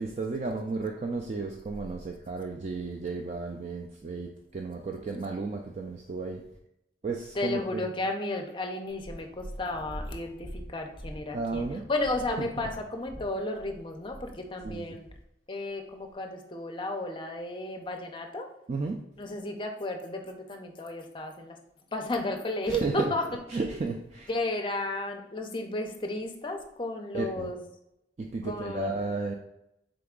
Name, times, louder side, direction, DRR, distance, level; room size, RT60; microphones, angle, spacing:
voice 1, 0.0-4.3 4.5-6.4 7.0-7.8 11.3-11.8 14.6-14.9 18.7-18.9 22.7-23.1 23.5-24.3 27.1-27.5 28.3-29.3, right 3 dB, 40° right, 0.3 m, -33 dB
voice 2, 7.3-15.0 15.5-18.5 19.2-21.6 21.9-23.4 24.3-27.6 28.4-29.0, left 2 dB, 25° left, 0.5 m, -33 dB
Purr, 8.9-15.2 16.0-16.1, equal, 15° right, 1.5 m, -43 dB
3.8 x 3.4 x 3.6 m
head